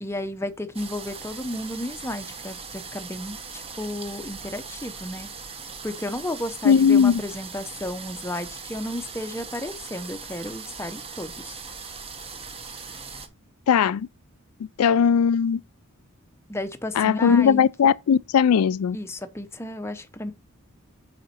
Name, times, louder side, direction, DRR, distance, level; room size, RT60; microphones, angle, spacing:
voice 1, 0.0-5.3 5.8-11.6 16.5-17.6 18.9-20.3, left 1 dB, 10° left, 0.7 m, -33 dB
sound 1, 0.7-13.3, right 5 dB, 25° right, 0.9 m, -39 dB
voice 2, 6.6-7.2 13.7-14.1 14.8-15.6 17.0-19.0, left 7 dB, 85° left, 0.4 m, -18 dB
7.2 x 5.1 x 4.3 m
head